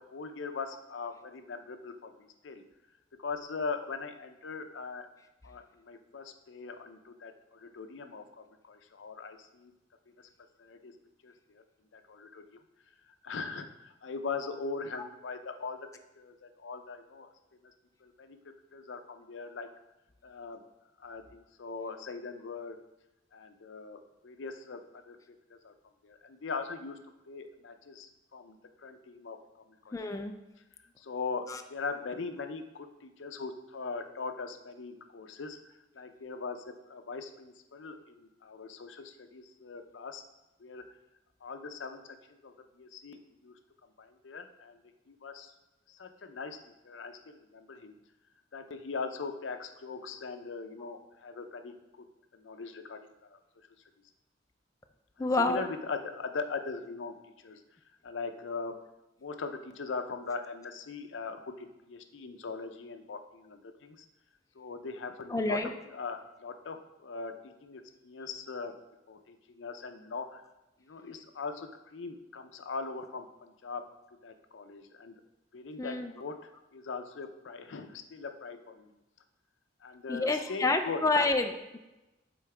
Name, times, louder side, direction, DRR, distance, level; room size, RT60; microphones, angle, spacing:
voice 1, 0.1-2.1 2.4-2.6 3.2-5.1 5.4-9.7 10.6-10.9 11.2-11.6 11.9-12.6 13.2-15.9 16.2-17.3 18.0-18.4 18.7-19.7 20.2-20.6 21.0-22.8 23.3-24.8 25.1-25.2 25.6-25.7 26.0-27.0 27.3-29.4 29.9-30.3 31.0-35.6 35.9-40.2 40.6-40.8 41.4-42.0 42.3-43.5 44.0-44.8 45.1-45.5 45.9-46.6 46.8-47.9 48.5-51.7 52.3-53.4 55.2-57.1 57.4-57.6 58.0-58.7 59.2-64.0 64.6-65.6 65.8-67.3 67.6-68.7 69.1-70.4 70.8-73.8 74.2-75.1 75.5-76.4 76.7-78.9 79.8-81.0, left 4 dB, 85° left, 7 dB, 0.6 m, -40 dB
voice 2, 29.9-30.3 31.5-31.6 55.2-55.6 65.3-65.7 75.8-76.1 80.1-81.8, left 2 dB, 20° left, 6 dB, 0.4 m, -28 dB
8.4 x 3.9 x 3.3 m, 1.0 s
head